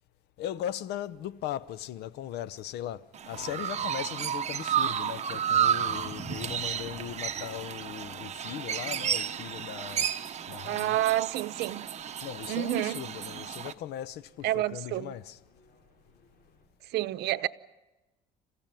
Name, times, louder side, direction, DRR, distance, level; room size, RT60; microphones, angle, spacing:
voice 1, 0.4-10.1 10.5-11.0 12.2-15.4, left 11 dB, 75° left, 0.8 m, -38 dB
sound 1, 1.1-16.6, left 3 dB, 60° left, 6.9 m, -62 dB
Chirp tweet, 3.1-13.7, right 9 dB, 40° right, 1.1 m, -32 dB
sound 2, 5.5-9.4, left 5 dB, 40° left, 1.7 m, -53 dB
voice 2, 10.7-11.9 12.5-13.1 14.4-15.1 16.9-17.5, right 15 dB, 80° right, 0.8 m, -29 dB
28.0 x 16.0 x 9.1 m
cardioid pair, 110°, 17 cm